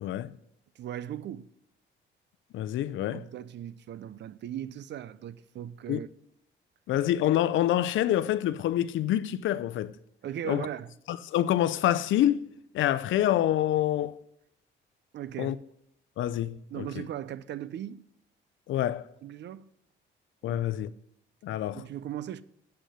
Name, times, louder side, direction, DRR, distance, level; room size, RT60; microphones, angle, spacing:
voice 1, 0.0-0.3 2.5-3.3 5.9-6.0 6.9-9.9 10.4-10.7 11.1-12.5 12.7-14.2 15.4-15.5 16.2-17.0 18.7-19.1 20.4-20.9 21.4-21.8, left 12 dB, 75° left, 0.6 m, -27 dB
voice 2, 0.8-1.5 3.1-6.1 10.2-10.9 15.1-15.6 16.7-18.0 19.2-19.7 20.4-20.6 21.7-22.4, right 11 dB, 60° right, 0.5 m, -38 dB
8.2 x 6.3 x 8.1 m
cardioid pair, 90°, 20 cm